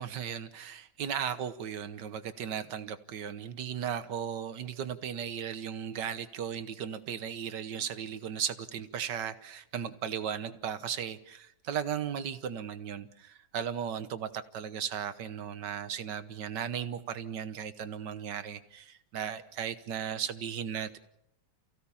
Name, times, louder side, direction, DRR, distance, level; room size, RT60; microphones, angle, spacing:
voice 1, 0.0-21.0, right 8 dB, 85° right, 12 dB, 1.7 m, -36 dB
28.5 x 16.0 x 7.1 m, 0.78 s
omnidirectional pair, 1.9 m